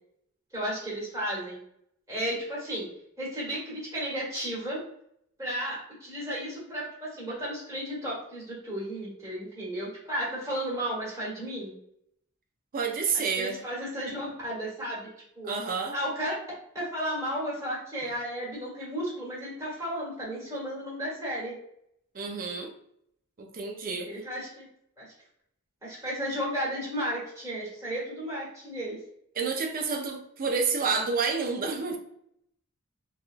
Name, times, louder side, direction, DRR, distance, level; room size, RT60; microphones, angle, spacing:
voice 1, 0.5-1.6 2.1-2.9 3.2-4.8 5.4-11.7 13.1-15.1 15.3-15.5 15.9-16.3 16.7-21.5 24.0-24.7 25.0-25.1 25.8-29.0, equal, 15° right, -6 dB, 1.4 m, -33 dB
voice 2, 12.7-13.6 15.5-16.0 22.1-22.7 23.4-24.1 29.4-32.0, right 5 dB, 40° right, 3 dB, 0.5 m, -29 dB
3.5 x 2.3 x 2.4 m, 0.73 s
head